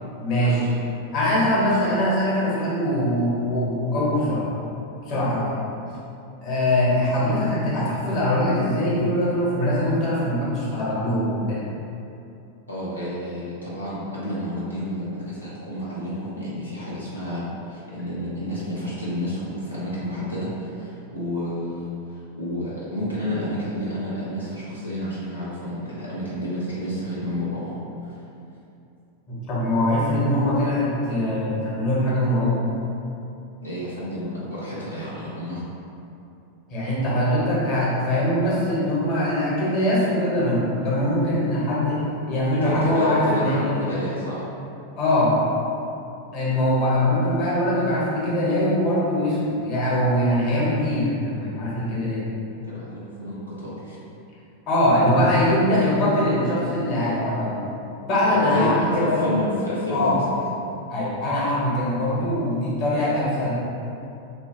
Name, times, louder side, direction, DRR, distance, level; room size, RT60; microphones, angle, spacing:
voice 1, 0.2-0.6 1.1-4.5 5.0-5.6 6.4-11.6 29.3-32.6 36.7-43.9 45.0-45.4 46.3-52.3 54.7-57.6 58.1-59.4 59.9-60.4 60.9-63.5, left 1 dB, 40° left, -8 dB, 0.9 m, -22 dB
voice 2, 1.6-1.9 5.1-5.3 12.7-28.2 33.6-35.6 42.6-44.4 45.9-46.0 52.3-54.0 58.3-60.2, left 1 dB, 85° left, -10 dB, 0.5 m, -30 dB
3.0 x 2.3 x 2.9 m, 2.8 s
figure-of-eight pair, 90°, 0 cm